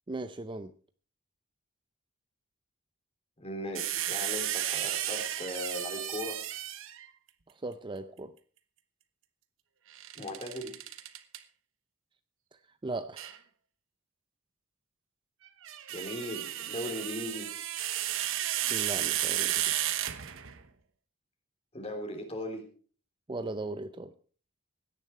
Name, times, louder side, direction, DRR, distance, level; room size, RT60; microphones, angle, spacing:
voice 1, 0.1-0.7 7.5-8.3 12.8-13.4 18.7-19.8 23.3-24.1, right 2 dB, 20° right, 11 dB, 0.5 m, -38 dB
voice 2, 3.4-6.4 10.2-10.7 15.9-17.5 21.7-22.6, left 1 dB, 25° left, 3 dB, 3.3 m, -38 dB
sound 1, 3.7-7.1 9.9-11.4 13.2-13.4 15.5-20.6, right 12 dB, 60° right, 1.1 m, -33 dB
17.0 x 10.5 x 4.5 m, 0.42 s
head